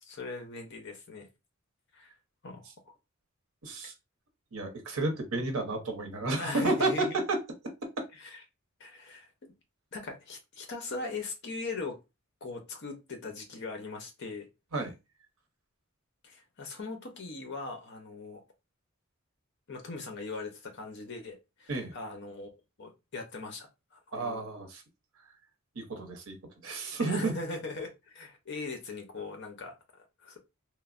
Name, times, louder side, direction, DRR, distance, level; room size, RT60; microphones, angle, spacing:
voice 1, 0.0-1.3 1.9-2.1 2.4-2.9 6.4-7.2 8.1-8.4 8.8-9.3 9.9-12.0 12.4-14.5 16.2-18.4 19.7-22.5 22.8-24.4 27.0-30.4, left 3 dB, 55° left, 4 dB, 0.7 m, -40 dB
voice 2, 3.6-3.9 4.5-7.4 8.0-8.1 14.7-15.0 21.7-22.0 24.1-24.8 25.8-26.4 26.6-27.3, right 2 dB, 85° right, 6 dB, 0.7 m, -31 dB
3.1 x 2.0 x 2.4 m, 0.25 s
head